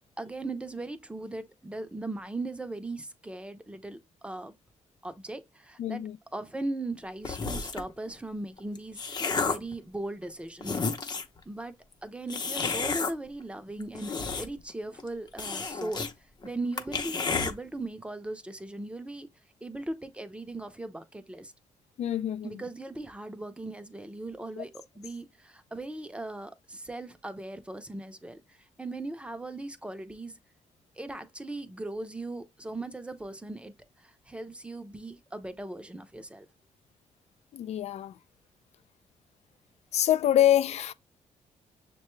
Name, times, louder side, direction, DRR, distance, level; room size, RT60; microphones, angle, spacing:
voice 1, 0.2-4.5 5.0-6.0 6.3-10.8 11.5-16.1 16.4-19.3 19.6-21.5 22.4-30.4 31.0-36.5, right 2 dB, 10° right, 0.6 m, -38 dB
voice 2, 5.8-6.2 22.0-22.5 24.6-24.7 37.5-38.1 39.9-40.9, left 11 dB, 65° left, 0.4 m, -25 dB
sound 1, 7.2-7.9 8.6-9.7 10.3-10.4 10.6-11.4 12.3-13.1 13.8-14.7 15.0-15.1 15.4-16.1 16.4-16.5 16.8-17.5, left 4 dB, 35° left, 0.7 m, -31 dB
6.5 x 2.2 x 3.1 m
cardioid pair, 95°, 12 cm